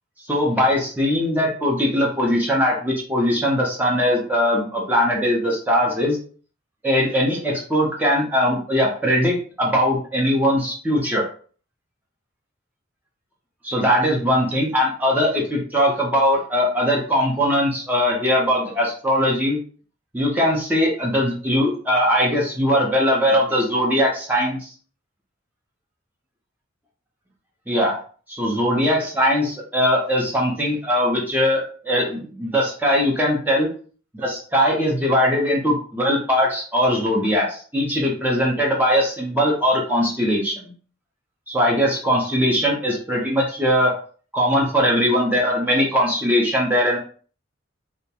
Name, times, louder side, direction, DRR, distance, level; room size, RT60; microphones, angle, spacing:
voice 1, 0.3-6.2 6.8-11.2 13.6-19.6 20.1-24.7 27.7-28.0 28.3-33.7 34.1-40.7 41.5-43.9 44.3-47.0, equal, 10° right, -3 dB, 0.5 m, -20 dB
2.2 x 2.1 x 2.8 m, 0.42 s
head